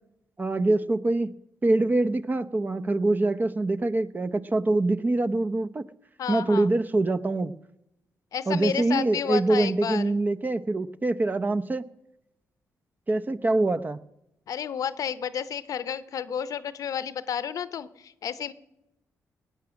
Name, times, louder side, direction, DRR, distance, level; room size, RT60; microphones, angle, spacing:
voice 1, 0.4-1.3 1.6-5.8 6.3-7.5 8.5-11.8 13.1-14.0, right 2 dB, 30° right, 12 dB, 0.7 m, -24 dB
voice 2, 6.2-6.7 8.3-10.2 14.5-18.5, left 8 dB, 70° left, 15 dB, 0.7 m, -31 dB
18.5 x 8.8 x 6.2 m, 0.88 s
cardioid pair, 65°, 6 cm